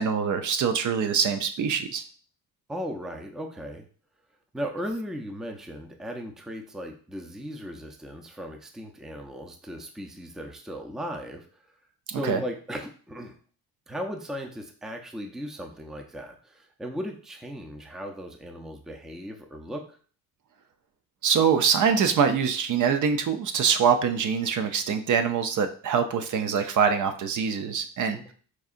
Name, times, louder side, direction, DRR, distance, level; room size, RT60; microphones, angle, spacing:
voice 1, 0.0-2.0 12.2-12.4 21.2-28.3, right 6 dB, 55° right, 8 dB, 0.5 m, -24 dB
voice 2, 2.7-3.9 4.5-11.5 12.1-13.3 13.9-20.0 28.1-28.3, equal, ahead, 3 dB, 0.4 m, -37 dB
4.7 x 2.7 x 2.4 m, 0.43 s
cardioid pair, 105°, 36 cm